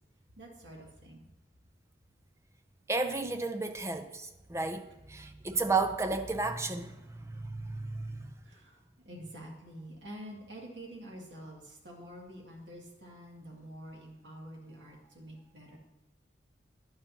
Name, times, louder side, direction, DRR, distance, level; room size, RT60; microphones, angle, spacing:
voice 1, 0.4-1.3 8.4-15.8, equal, 75° right, 2.3 m, -47 dB
voice 2, 2.9-8.4, right 3 dB, 15° right, 0.5 m, -33 dB
10.5 x 8.9 x 2.8 m
head